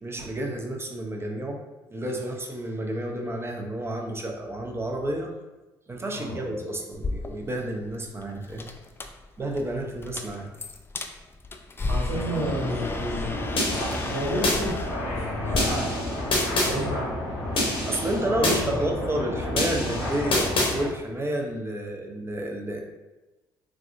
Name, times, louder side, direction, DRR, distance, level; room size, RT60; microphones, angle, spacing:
voice 1, 0.0-1.6 1.9-5.3 5.9-8.7 9.4-10.5 17.6-22.8, right 1 dB, 25° right, 1 dB, 0.6 m, -30 dB
sound 1, 6.9-15.6, left 3 dB, 20° left, 0.3 m, -35 dB
voice 2, 11.9-15.6 16.6-17.1 18.3-19.0, equal, 70° right, -7 dB, 1.4 m, -31 dB
sound 2, 12.1-20.8, left 1 dB, 85° left, 0.8 m, -31 dB
sound 3, 13.6-14.6 15.6-16.7 17.6-18.6 19.6-20.7, left 2 dB, 55° left, 0.9 m, -26 dB
3.4 x 2.2 x 2.5 m, 1.1 s
hypercardioid pair, 50°, 10 cm